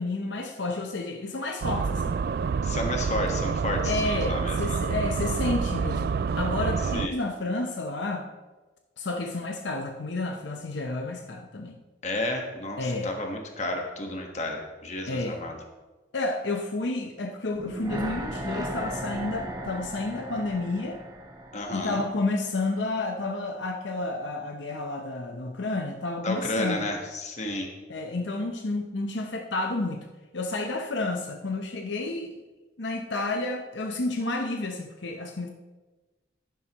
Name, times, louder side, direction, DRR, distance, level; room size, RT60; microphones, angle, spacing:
voice 1, 0.0-2.2 3.8-8.3 9.0-11.8 12.8-13.1 15.1-15.4 16.1-21.0 21.7-26.9 27.9-30.0 30.3-32.4 32.8-35.5, left 2 dB, 80° left, 4 dB, 0.8 m, -30 dB
sound 1, 1.6-7.1, right 5 dB, 55° right, 0.3 m, -28 dB
voice 2, 2.6-4.8 6.9-7.1 12.0-15.5 21.5-22.0 26.2-27.7, left 1 dB, 40° left, 3 dB, 1.4 m, -31 dB
sound 2, 17.5-22.7 23.0-23.1, right 1 dB, 20° right, 1.1 m, -36 dB
11.0 x 10.5 x 3.0 m, 1.2 s
head